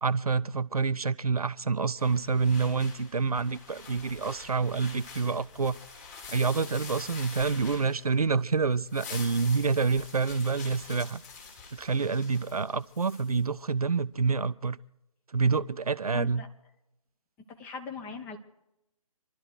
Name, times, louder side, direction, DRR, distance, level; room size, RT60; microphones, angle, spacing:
voice 1, 0.0-5.8 6.3-11.2 11.7-14.8 15.3-16.4, right 5 dB, 80° right, 0.5 m, -27 dB
sound 1, 2.0-8.4 8.7-13.4, left 5 dB, 25° left, 3.1 m, -46 dB
voice 2, 16.1-16.5 17.5-18.4, left 5 dB, 10° left, 0.7 m, -40 dB
26.5 x 11.5 x 4.7 m
figure-of-eight pair, 145°, 19 cm